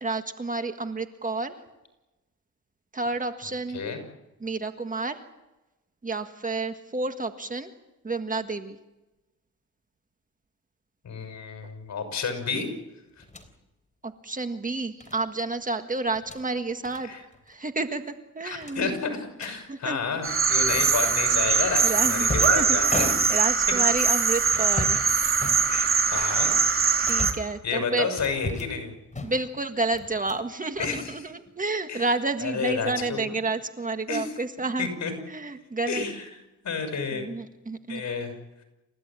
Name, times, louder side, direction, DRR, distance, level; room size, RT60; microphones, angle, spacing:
voice 1, 0.0-1.5 2.9-3.8 4.4-5.2 6.0-7.7 8.0-8.8 14.0-17.1 17.5-18.9 19.7-20.0 21.8-25.0 27.0-28.1 29.2-34.9 35.2-36.0 37.1-38.0, right 3 dB, 25° right, 7 dB, 1.7 m, -30 dB
voice 2, 11.0-12.7 17.0-17.2 18.4-23.1 25.7-27.2 27.6-28.9 30.8-31.1 31.9-32.1 32.4-33.4 34.1-34.3 34.8-35.1 35.9-36.3 36.6-37.2 37.9-38.3, left 5 dB, 65° left, 6 dB, 6.4 m, -30 dB
sound 1, 13.2-13.5 15.0-15.2 16.1-16.4 16.8-17.0 17.3-17.5 17.8-17.9 18.6-19.6 20.7-21.1 21.8-23.7 24.5-25.1 25.4-26.1 26.6-27.6 28.2-28.8 29.1-29.6 29.9-30.5 30.8-31.6, left 2 dB, 25° left, 3.6 m, -35 dB
sound 2, 20.2-27.3, right 5 dB, 45° right, 2.9 m, -22 dB
29.0 x 15.5 x 8.9 m, 1.0 s
cardioid pair, 115°, 31 cm